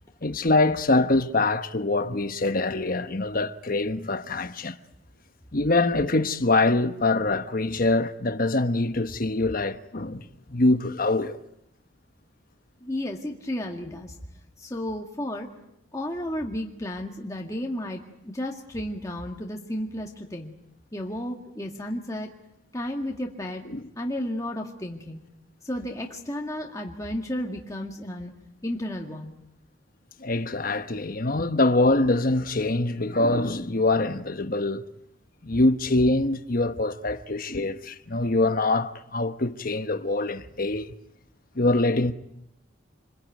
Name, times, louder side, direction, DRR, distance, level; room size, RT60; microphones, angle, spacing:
voice 1, 0.2-4.8 5.5-11.4 23.7-23.8 30.2-34.8 35.4-40.9 41.5-42.1, left 2 dB, 45° left, 1.1 m, -24 dB
voice 2, 12.8-14.2 14.6-15.5 15.9-20.5 20.9-22.3 22.7-23.6 24.0-25.2 25.6-28.3 28.6-29.3, left 1 dB, 15° left, 2.0 m, -33 dB
28.0 x 21.5 x 9.3 m
head